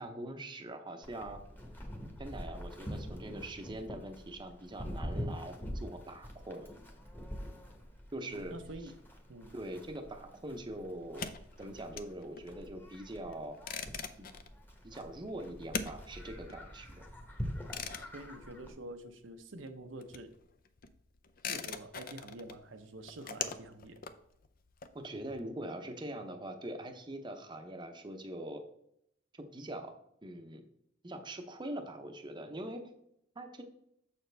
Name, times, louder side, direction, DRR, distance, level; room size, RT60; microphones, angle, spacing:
voice 1, 0.0-1.4 2.2-6.7 8.1-8.6 9.5-11.2 11.6-13.6 14.2-14.3 14.8-17.0 24.9-28.6 29.3-29.9 30.2-30.6 31.0-32.9 33.4-33.6, right 1 dB, 25° right, 5 dB, 0.7 m, -43 dB
Livestock farm animals working animals, 1.0-18.7, equal, 10° left, 1.1 m, -45 dB
voice 2, 8.2-8.9 9.3-9.5 18.1-20.3 21.5-24.0, right 2 dB, 80° right, 7 dB, 0.7 m, -47 dB
sound 1, 11.0-19.4 19.6-25.4, left 6 dB, 50° left, 0.5 m, -43 dB
7.0 x 6.7 x 3.3 m, 0.72 s
head